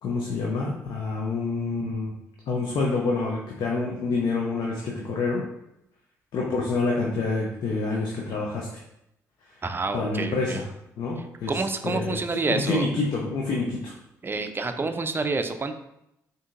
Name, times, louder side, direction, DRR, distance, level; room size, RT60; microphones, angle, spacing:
voice 1, 0.0-2.1 2.5-5.5 6.3-8.8 9.9-10.7 11.0-13.9, left 3 dB, 60° left, -1 dB, 0.5 m, -27 dB
voice 2, 9.6-10.6 11.5-12.9 14.2-15.8, right 3 dB, 25° right, 8 dB, 0.4 m, -28 dB
3.7 x 2.6 x 2.5 m, 0.83 s
hypercardioid pair, 45°, 8 cm